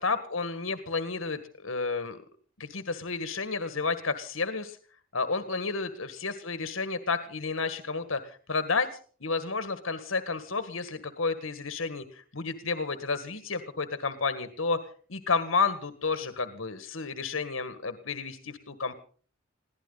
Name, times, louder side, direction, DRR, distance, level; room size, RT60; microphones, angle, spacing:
voice 1, 0.0-2.2 2.6-4.8 5.1-8.9 9.2-14.8 15.1-18.9, left 4 dB, 75° left, 10 dB, 1.8 m, -31 dB
22.0 x 16.5 x 4.0 m, 0.43 s
head